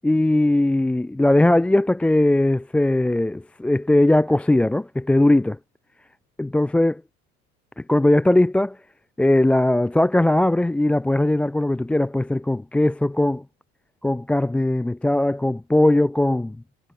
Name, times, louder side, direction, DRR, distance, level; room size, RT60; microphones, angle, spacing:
voice 1, 0.0-5.6 6.4-7.0 7.8-8.8 9.2-13.4 14.0-16.6, left 1 dB, 5° left, 0.4 m, -19 dB
figure-of-eight pair, 75°, 42 cm